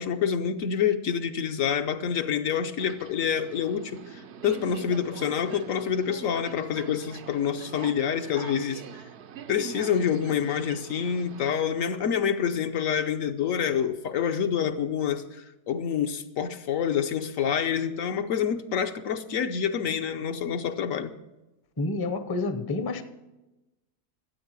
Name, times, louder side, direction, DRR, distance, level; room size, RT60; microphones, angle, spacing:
voice 1, 0.0-8.8 9.5-21.1, left 8 dB, 65° left, 1.1 m, -27 dB
Subway metro underground, 2.7-11.6, right 8 dB, 55° right, 0.8 m, -44 dB
voice 2, 21.8-23.0, left 3 dB, 20° left, 0.6 m, -29 dB
13.0 x 8.7 x 7.4 m
omnidirectional pair, 1.6 m